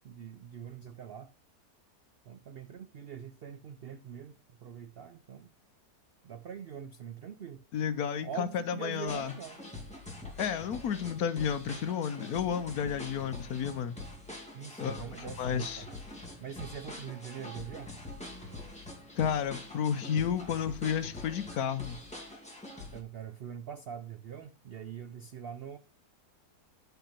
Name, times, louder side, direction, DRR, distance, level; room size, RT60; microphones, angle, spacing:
voice 1, 0.0-1.3 2.3-5.5 6.2-7.6 8.2-9.6 14.5-15.9 16.4-17.9 22.9-25.8, right 8 dB, 85° right, 0.5 m, -43 dB
voice 2, 7.7-9.3 10.4-13.9 14.8-15.8 19.2-22.0, left 8 dB, 70° left, 1.2 m, -32 dB
sound 1, 9.1-23.0, left 2 dB, 5° left, 2.3 m, -45 dB
9.1 x 5.7 x 5.7 m
omnidirectional pair, 1.7 m